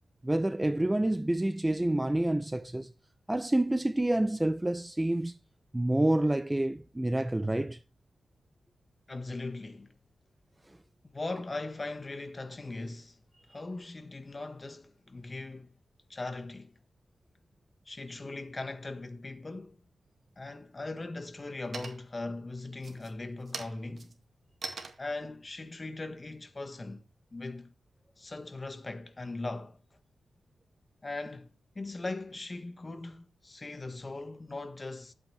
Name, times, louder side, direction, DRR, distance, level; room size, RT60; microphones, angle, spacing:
voice 1, 0.2-2.9 3.3-5.4 5.7-7.8, right 1 dB, 10° right, 0.5 m, -28 dB
voice 2, 9.1-9.9 11.1-13.2 13.5-15.7 16.1-16.7 17.9-19.8 20.4-24.1 25.0-27.0 27.3-27.7 28.2-29.8 31.0-35.1, left 2 dB, 25° left, 1.4 m, -39 dB
sound 1, 20.1-20.7 21.1-21.5 21.7-22.3 22.7-27.2, right 4 dB, 45° right, 2.0 m, -44 dB
12.0 x 8.5 x 3.2 m
wide cardioid pair, 145°, 0 cm